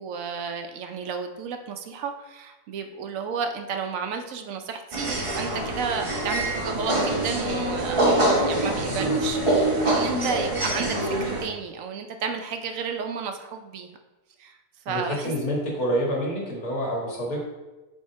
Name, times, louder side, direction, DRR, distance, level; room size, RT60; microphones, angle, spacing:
voice 1, 0.0-13.9 14.4-14.6 14.9-15.3, right 6 dB, 70° right, 6 dB, 0.9 m, -32 dB
sound 1, 4.9-11.4, right 1 dB, 25° right, 0.8 m, -25 dB
voice 2, 8.6-9.3 14.9-17.4, equal, 75° left, -3 dB, 2.2 m, -28 dB
6.3 x 3.7 x 4.4 m, 1.1 s
omnidirectional pair, 1.5 m